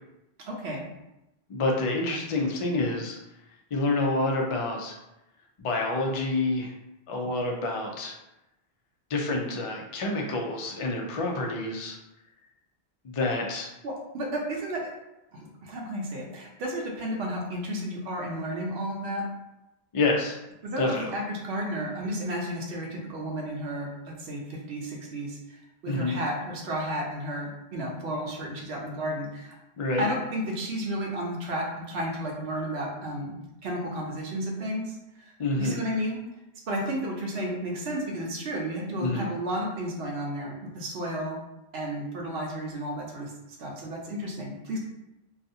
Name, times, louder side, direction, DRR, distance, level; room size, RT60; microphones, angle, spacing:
voice 1, 0.5-0.9 13.8-14.9 15.3-19.3 20.6-23.9 24.2-29.5 30.0-36.2 36.7-41.4 41.7-44.8, equal, 80° right, -1 dB, 0.9 m, -32 dB
voice 2, 1.5-3.2 3.7-4.9 5.6-6.7 7.1-8.1 9.1-12.0 13.0-13.7 19.9-20.4 20.8-21.1 25.9-26.2 29.8-30.1 35.4-35.8 39.0-39.3, left 2 dB, 55° left, 0 dB, 0.3 m, -28 dB
2.5 x 2.3 x 2.6 m, 0.92 s
omnidirectional pair, 1.1 m